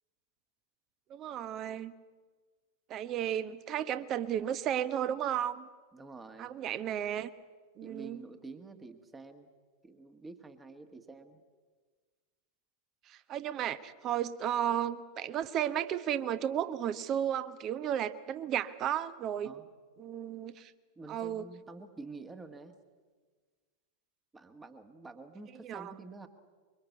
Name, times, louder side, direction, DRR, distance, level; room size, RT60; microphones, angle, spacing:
voice 1, 1.1-1.9 2.9-5.7 6.4-7.3 7.8-8.2 13.1-19.5 20.0-20.7 21.1-21.4 25.6-25.9, right 10 dB, 35° right, 13 dB, 1.2 m, -33 dB
voice 2, 5.9-6.5 7.8-9.5 9.8-11.4 19.4-19.7 21.0-22.8 24.3-26.3, right 3 dB, 15° right, 8 dB, 1.7 m, -48 dB
25.5 x 23.5 x 8.3 m, 1.5 s
figure-of-eight pair, 90°, 0 cm